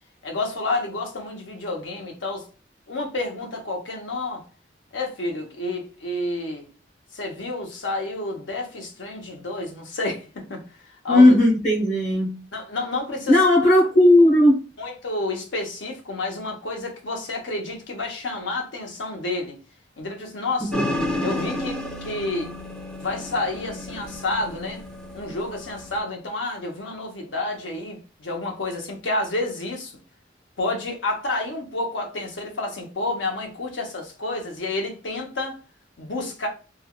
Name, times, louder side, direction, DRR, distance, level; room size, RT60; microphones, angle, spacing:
voice 1, 0.2-2.5 2.9-4.4 4.9-6.7 7.1-11.3 12.5-13.4 14.8-19.6 20.0-20.8 21.2-22.5 22.9-24.8 25.1-29.9 30.6-35.6 36.0-36.5, left 2 dB, 90° left, 0.8 m, -30 dB
voice 2, 11.1-12.4 13.3-14.6 20.7-20.8, left 1 dB, 40° left, 1.0 m, -16 dB
sound 1, 20.7-26.0, left 1 dB, 5° left, 0.3 m, -31 dB
3.3 x 2.3 x 2.3 m
head